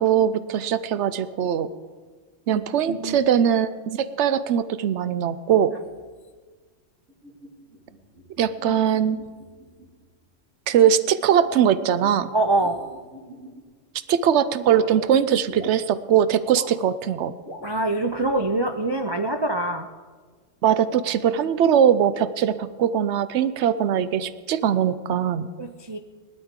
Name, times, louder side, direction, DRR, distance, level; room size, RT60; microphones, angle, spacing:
voice 1, 0.0-1.7 2.5-5.8 8.4-9.2 10.7-12.3 14.1-17.3 20.6-25.5, right 9 dB, 65° right, 14 dB, 0.9 m, -21 dB
voice 2, 2.9-3.3 12.3-12.8 17.6-19.9 25.6-26.0, right 2 dB, 35° right, 4 dB, 0.4 m, -24 dB
sound 1, 7.1-10.1 11.3-13.6, equal, 85° right, 2.7 m, -48 dB
sound 2, 14.7-15.8 16.4-16.8 17.4-17.8, left 1 dB, 40° left, 1.9 m, -38 dB
19.5 x 12.0 x 3.7 m, 1.5 s
omnidirectional pair, 1.4 m